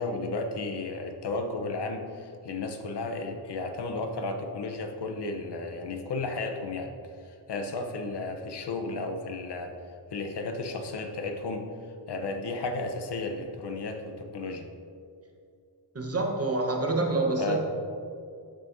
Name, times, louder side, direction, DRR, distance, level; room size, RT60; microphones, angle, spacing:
voice 1, 0.0-6.9 7.2-9.7 10.1-11.7 12.1-14.7 17.4-17.6, left 3 dB, 65° left, 5 dB, 0.8 m, -33 dB
voice 2, 15.9-17.6, right 2 dB, 35° right, 1 dB, 1.1 m, -27 dB
8.9 x 7.6 x 2.6 m, 2.4 s
wide cardioid pair, 120°, 43 cm